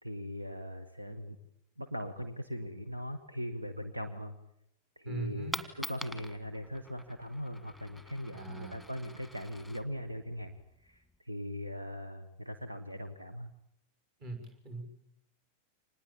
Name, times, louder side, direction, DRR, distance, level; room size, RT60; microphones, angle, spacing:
voice 1, 0.0-1.4 1.8-4.4 4.9-13.5, equal, 85° right, 8 dB, 1.6 m, -40 dB
voice 2, 5.1-5.6 8.3-8.8 14.2-14.8, right 3 dB, 40° right, 7 dB, 6.3 m, -41 dB
Coin (dropping), 5.2-11.2, left 1 dB, 5° right, 1.8 m, -46 dB
26.0 x 20.0 x 8.9 m, 0.75 s
figure-of-eight pair, 90°, 0 cm